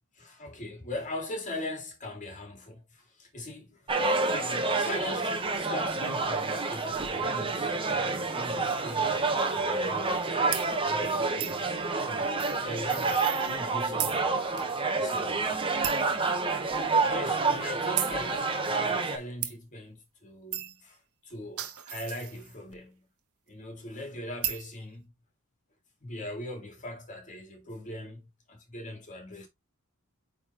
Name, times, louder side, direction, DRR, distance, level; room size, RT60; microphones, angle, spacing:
voice 1, 0.1-10.4 10.8-11.8 12.0-14.7 15.0-16.1 17.0-23.1 23.5-25.1 26.0-29.5, left 1 dB, 35° left, 2.5 m, -41 dB
sound 1, 3.9-19.2, right 3 dB, 25° right, 1.1 m, -28 dB
sound 2, 10.5-10.7 11.4-11.6 12.4-13.7 14.0-14.2 14.6-14.7 15.1-15.2 15.8-16.1 16.7-16.8 18.0-18.2 19.4-19.5 20.5-20.8 21.3-22.7 24.4-24.7, right 11 dB, 80° right, 1.2 m, -34 dB
8.7 x 3.8 x 3.0 m
head